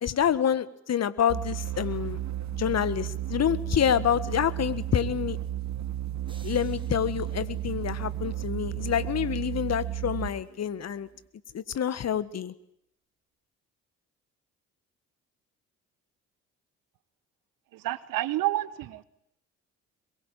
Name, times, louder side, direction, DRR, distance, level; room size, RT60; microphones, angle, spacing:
voice 1, 0.0-2.2 2.6-5.4 6.4-11.1 11.5-12.5, left 9 dB, 45° left, 16 dB, 1.6 m, -27 dB
sound 1, 1.3-10.4, right 12 dB, 50° right, 2.1 m, -33 dB
sound 2, 6.2-8.5, right 2 dB, 15° right, 8.0 m, -58 dB
voice 2, 17.7-19.0, right 16 dB, 70° right, 17 dB, 1.4 m, -29 dB
22.5 x 22.0 x 9.2 m, 0.74 s
hypercardioid pair, 55°, 35 cm